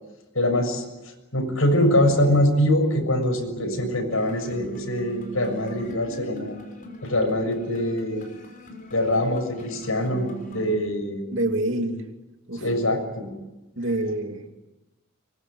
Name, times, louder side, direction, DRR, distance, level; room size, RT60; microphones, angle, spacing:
voice 1, 0.4-0.8 1.3-6.6 7.0-8.2 8.9-11.2 12.6-13.3, left 1 dB, 85° left, 5 dB, 6.9 m, -23 dB
sound 1, 4.1-10.7, right 3 dB, 40° left, 5.7 m, -41 dB
voice 2, 11.3-12.0 12.5-12.6 13.8-14.5, right 1 dB, 65° right, 4 dB, 3.0 m, -26 dB
24.5 x 22.0 x 9.8 m, 1.0 s
head